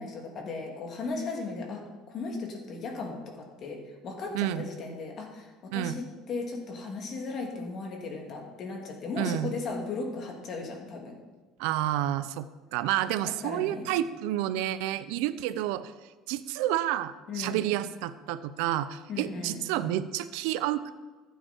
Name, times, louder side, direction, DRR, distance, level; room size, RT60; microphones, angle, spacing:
voice 1, 0.0-11.2 13.4-13.9 17.3-17.7 19.1-19.6, left 3 dB, 40° left, 1 dB, 2.7 m, -36 dB
voice 2, 9.2-9.6 11.6-12.4 12.7-15.9 16.3-20.9, right 13 dB, 80° right, 13 dB, 0.6 m, -29 dB
14.5 x 9.2 x 4.5 m, 1.3 s
cardioid pair, 145°, 0 cm